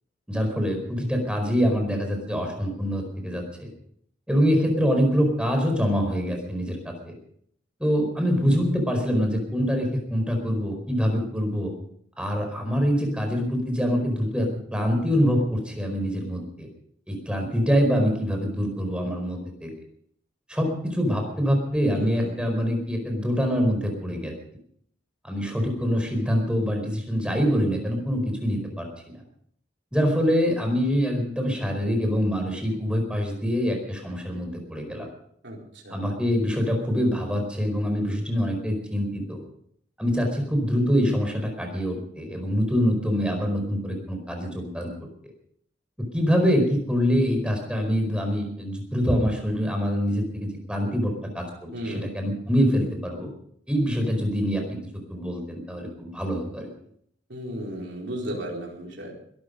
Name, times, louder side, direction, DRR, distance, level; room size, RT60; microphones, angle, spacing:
voice 1, 0.3-3.7 4.3-7.1 7.8-11.7 12.2-16.7 17.1-19.7 20.5-24.3 25.2-28.9 29.9-35.1 35.9-39.4 40.0-44.9 46.1-51.5 51.8-53.3 53.7-54.8 55.1-56.7, equal, 5° right, 3 dB, 4.7 m, -25 dB
voice 2, 21.9-22.4 35.4-35.6 35.8-36.0 51.7-52.1 57.3-59.1, equal, 65° right, -2 dB, 4.4 m, -34 dB
21.5 x 12.5 x 5.2 m, 0.67 s
head